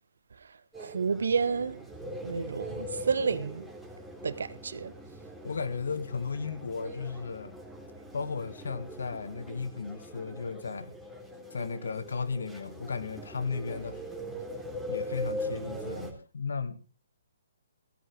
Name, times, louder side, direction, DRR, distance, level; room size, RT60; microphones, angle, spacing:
voice 1, 0.3-1.8 2.2-3.7 4.2-4.9, right 5 dB, 70° right, 1.3 m, -30 dB
sound 1, 0.7-16.1, equal, ahead, 3.7 m, -41 dB
voice 2, 5.4-7.6 8.1-10.9 11.5-14.0 14.9-16.8, left 5 dB, 70° left, 2.1 m, -35 dB
17.0 x 14.0 x 3.6 m
figure-of-eight pair, 130°, 0 cm